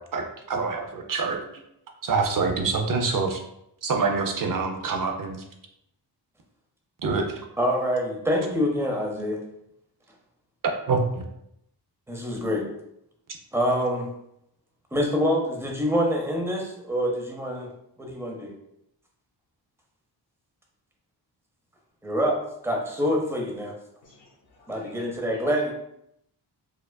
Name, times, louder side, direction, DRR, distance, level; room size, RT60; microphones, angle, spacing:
voice 1, 0.1-1.4 2.0-3.4 3.8-5.4 7.0-7.4 10.9-11.2, right 4 dB, 50° right, 3 dB, 0.5 m, -26 dB
voice 2, 7.6-9.4 12.1-12.7 13.5-14.1 14.9-17.7 18.0-18.5 22.0-23.7 24.7-25.7, equal, 5° right, 0 dB, 0.7 m, -26 dB
voice 3, 24.0-25.5, left 2 dB, 90° left, -6 dB, 1.0 m, -55 dB
4.7 x 2.4 x 2.2 m, 0.78 s
wide cardioid pair, 110°, 43 cm